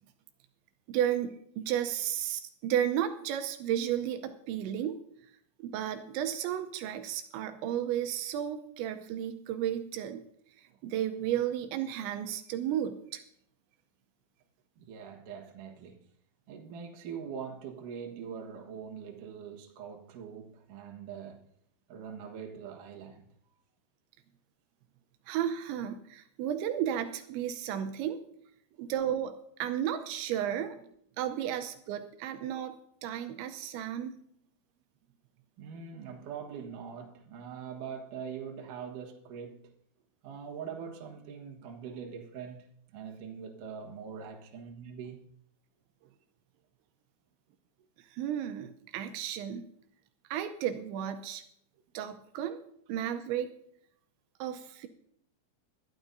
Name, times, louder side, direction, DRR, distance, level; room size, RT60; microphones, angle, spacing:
voice 1, 0.9-5.0 5.6-10.2 10.6-13.2 25.3-28.2 28.8-29.3 29.6-30.8 31.2-32.8 33.0-34.1 48.1-49.7 50.3-51.4 51.9-52.6 52.9-53.5 54.4-54.9, right 10 dB, 85° right, 3.0 m, -33 dB
voice 2, 14.8-16.0 16.5-21.5 21.9-23.3 28.7-28.8 35.6-39.7 40.2-45.3, right 7 dB, 60° right, 2.4 m, -43 dB
20.5 x 12.5 x 2.7 m
omnidirectional pair, 5.3 m